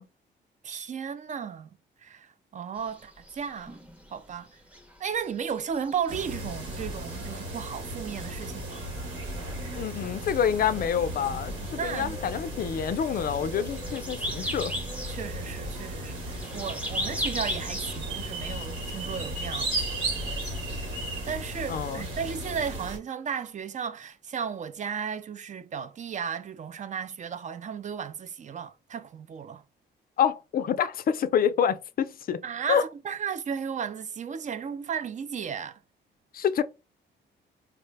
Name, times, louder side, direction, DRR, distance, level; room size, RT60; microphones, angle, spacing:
voice 1, 0.6-1.7 2.0-3.8 4.1-4.5 5.0-8.8 11.6-12.2 15.1-19.7 21.2-29.6 32.4-35.8, right 7 dB, 40° right, 0.4 m, -34 dB
sound 1, 2.8-20.3, equal, 5° right, 0.7 m, -40 dB
sound 2, 6.1-23.0, right 1 dB, 80° right, 1.4 m, -35 dB
voice 2, 9.7-14.7 21.7-22.1 30.2-32.4 32.7-32.8 36.3-36.6, left 8 dB, 50° left, 0.4 m, -27 dB
3.9 x 2.1 x 3.2 m
cardioid pair, 90°, 20 cm